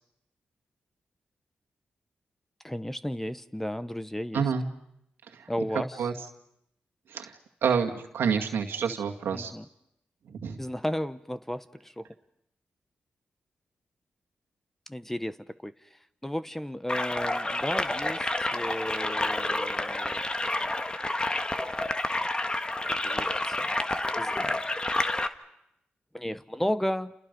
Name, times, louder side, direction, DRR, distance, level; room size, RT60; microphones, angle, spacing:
voice 1, 2.6-4.4 5.5-6.0 9.3-9.6 10.6-12.1 14.9-15.9 16.2-20.2 22.8-23.8 24.2-24.6 24.9-25.1 26.1-27.1, equal, 10° left, 13 dB, 1.1 m, -34 dB
voice 2, 4.3-4.7 5.3-5.5 6.0-6.1 7.1-7.4 7.6-9.5 10.3-10.6, right 6 dB, 85° right, 3 dB, 2.1 m, -28 dB
sound 1, 16.9-25.3, left 2 dB, 25° left, 1.5 m, -29 dB
30.0 x 28.5 x 5.4 m, 0.79 s
cardioid pair, 55°, 4 cm